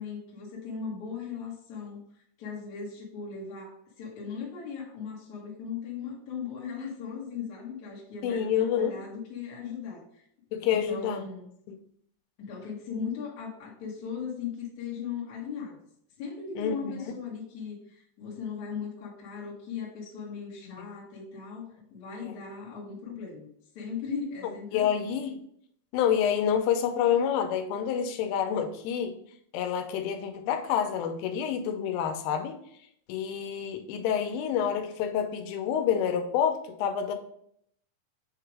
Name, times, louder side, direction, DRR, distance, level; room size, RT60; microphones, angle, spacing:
voice 1, 0.0-2.0 2.4-10.3 10.7-11.5 12.4-15.8 16.2-23.5 23.7-25.2, left 6 dB, 55° left, -4 dB, 2.1 m, -38 dB
voice 2, 8.2-8.9 10.5-11.2 11.7-11.8 16.6-17.1 24.7-25.3 25.9-29.1 29.5-32.6 33.1-37.2, left 8 dB, 90° left, 6 dB, 3.2 m, -28 dB
7.5 x 2.9 x 4.7 m, 0.69 s
omnidirectional pair, 5.5 m